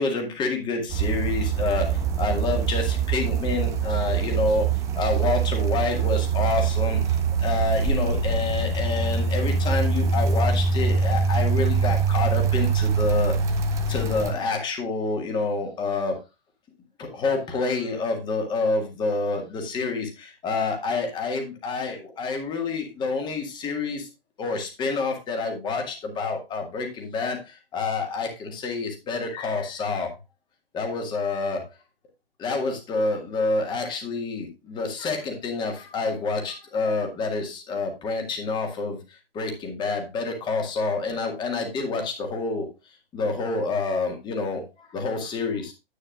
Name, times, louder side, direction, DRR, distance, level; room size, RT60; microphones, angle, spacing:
voice 1, 0.0-4.7 5.0-7.0 7.4-13.3 13.9-16.2 17.0-24.1 24.4-30.1 30.7-31.7 32.4-39.0 39.3-42.7 43.1-45.7, left 3 dB, 15° left, 3 dB, 1.8 m, -28 dB
sound 1, 0.9-14.3, right 5 dB, 10° right, 0.7 m, -24 dB
10.0 x 8.7 x 2.4 m, 0.25 s
figure-of-eight pair, 120°, 31 cm